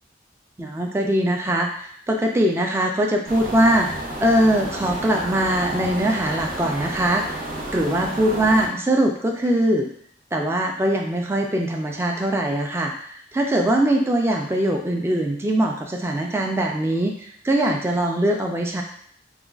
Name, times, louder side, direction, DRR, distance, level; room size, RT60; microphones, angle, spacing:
voice 1, 0.6-7.2 7.7-9.9 10.3-18.8, right 1 dB, 15° right, 1 dB, 0.3 m, -22 dB
sound 1, 3.2-8.7, right 1 dB, 45° right, 0.6 m, -31 dB
4.9 x 2.3 x 2.3 m, 0.63 s
head